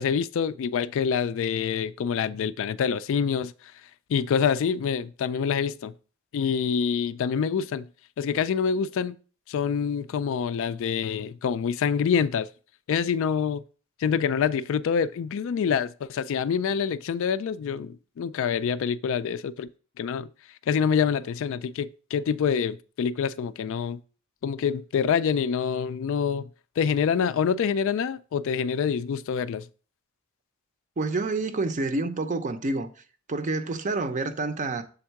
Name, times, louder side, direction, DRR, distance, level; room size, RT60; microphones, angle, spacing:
voice 1, 0.0-3.5 4.1-5.9 6.3-7.9 8.2-9.2 9.5-12.5 12.9-13.6 14.0-19.7 20.0-20.3 20.7-24.0 24.4-26.5 26.8-29.7, left 7 dB, 60° left, 0.3 m, -26 dB
voice 2, 31.0-32.9 33.3-34.8, right 3 dB, 35° right, 0.5 m, -28 dB
7.0 x 3.6 x 4.5 m
head